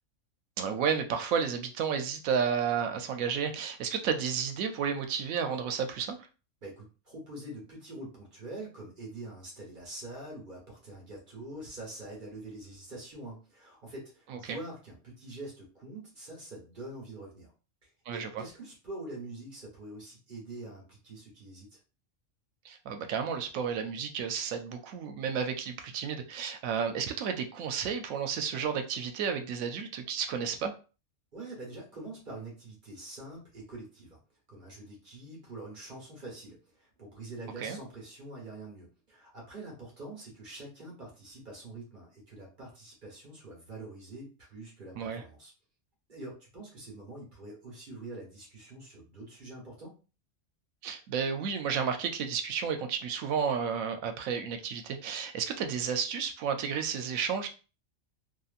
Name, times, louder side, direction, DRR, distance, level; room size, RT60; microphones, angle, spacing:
voice 1, 0.6-6.2 14.3-14.6 18.1-18.3 22.6-30.7 37.6-37.8 45.0-45.2 50.8-57.5, right 6 dB, 90° right, 6 dB, 1.0 m, -32 dB
voice 2, 6.6-17.5 17.8-21.8 31.3-34.2 34.5-45.5 46.1-49.9, right 2 dB, 40° right, -3 dB, 1.2 m, -45 dB
2.8 x 2.4 x 2.4 m, 0.34 s
omnidirectional pair, 1.4 m